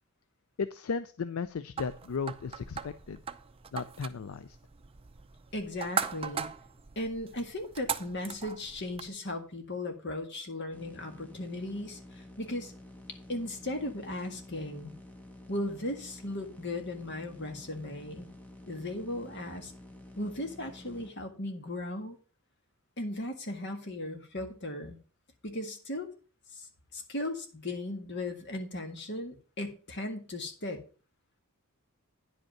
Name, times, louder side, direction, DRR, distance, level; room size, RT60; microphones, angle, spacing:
voice 1, 0.6-3.2 3.7-4.6, left 5 dB, 70° left, 14 dB, 0.4 m, -35 dB
sound 1, 1.8-9.1, right 6 dB, 25° right, 0.5 m, -39 dB
voice 2, 5.5-6.5 6.9-12.7 13.3-14.9 15.5-18.3 18.7-19.7 20.2-22.2 23.0-25.0 25.4-26.1 26.5-26.7 26.9-30.8, left 1 dB, 55° left, 5 dB, 1.8 m, -37 dB
sound 2, 10.7-21.1, left 1 dB, 5° left, 1.0 m, -50 dB
9.8 x 5.3 x 5.9 m, 0.36 s
head